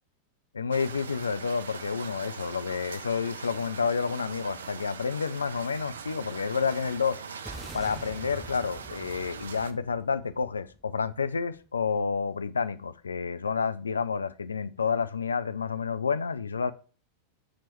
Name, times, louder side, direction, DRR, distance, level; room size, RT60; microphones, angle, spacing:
voice 1, 0.5-7.2 7.7-16.7, left 5 dB, 75° left, 0.4 m, -29 dB
sound 1, 0.7-9.7, right 6 dB, 65° right, 0.4 m, -41 dB
sound 2, 7.5-11.9, right 1 dB, 10° right, 0.5 m, -46 dB
7.1 x 3.0 x 4.4 m
figure-of-eight pair, 90°, 0 cm